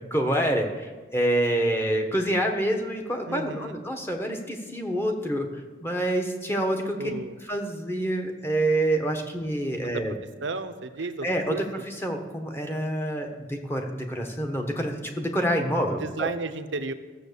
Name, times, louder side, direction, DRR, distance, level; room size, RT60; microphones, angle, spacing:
voice 1, 0.1-5.5 5.8-7.1 7.5-10.1 11.2-16.3, right 1 dB, 10° left, 3 dB, 1.2 m, -27 dB
voice 2, 3.2-3.8 7.0-7.3 9.9-10.2 10.4-11.6 16.0-16.9, right 3 dB, 75° right, 10 dB, 0.8 m, -33 dB
14.0 x 7.3 x 6.9 m, 1.4 s
head